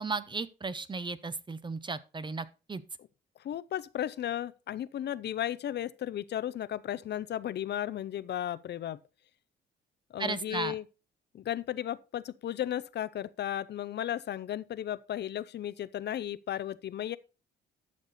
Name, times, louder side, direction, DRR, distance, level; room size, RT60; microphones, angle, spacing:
voice 1, 0.0-2.8 10.2-10.7, right 4 dB, 25° right, 0.8 m, -35 dB
voice 2, 3.4-9.0 10.1-10.8 11.3-17.2, left 11 dB, 60° left, 0.6 m, -35 dB
11.5 x 6.6 x 4.2 m
cardioid pair, 90°, 20 cm